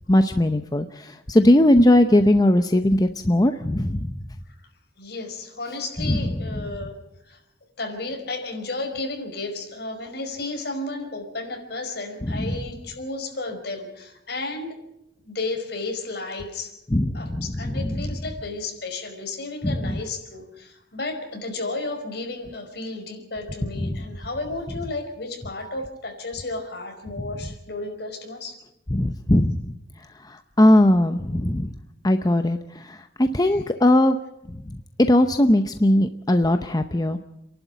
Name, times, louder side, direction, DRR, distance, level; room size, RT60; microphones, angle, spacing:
voice 1, 0.1-4.1 6.1-6.2 12.3-12.4 16.9-18.0 19.6-19.8 23.9-24.0 28.9-29.6 30.3-31.7 32.0-32.6 32.9-34.2 35.0-37.2, left 1 dB, 20° left, 7 dB, 0.7 m, -19 dB
voice 2, 5.0-7.0 7.2-7.4 7.8-14.8 15.2-16.8 17.1-28.6 33.4-33.6, left 2 dB, 60° left, 3 dB, 5.1 m, -33 dB
29.0 x 11.5 x 9.3 m, 0.87 s
head